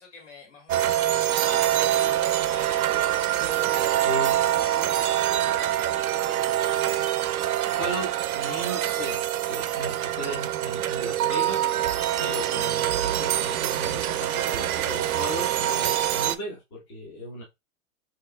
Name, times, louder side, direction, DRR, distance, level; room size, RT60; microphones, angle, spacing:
voice 1, 0.0-4.5 4.8-7.1 10.0-10.1, left 4 dB, 60° left, 2.3 m, -48 dB
sound 1, 0.7-16.4, right 12 dB, 85° right, 0.6 m, -25 dB
voice 2, 4.0-4.4 7.6-11.7 12.2-17.4, equal, 20° left, 1.1 m, -36 dB
6.3 x 2.9 x 2.2 m
hypercardioid pair, 180°, 42 cm